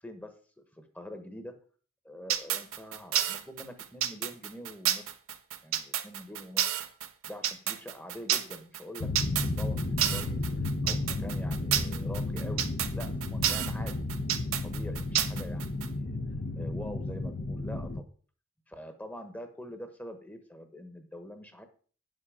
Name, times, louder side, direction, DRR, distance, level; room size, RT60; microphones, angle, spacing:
voice 1, 0.0-1.6 2.0-5.1 5.6-6.6 7.3-9.1 9.4-12.7 12.9-13.9 14.6-16.2 16.5-18.1 18.7-21.7, left 1 dB, 10° left, 7 dB, 1.2 m, -44 dB
sound 1, 2.3-15.9, right 10 dB, 80° right, 1.0 m, -30 dB
sound 2, 9.0-18.0, left 2 dB, 50° left, 0.8 m, -33 dB
9.7 x 7.6 x 5.0 m, 0.42 s
head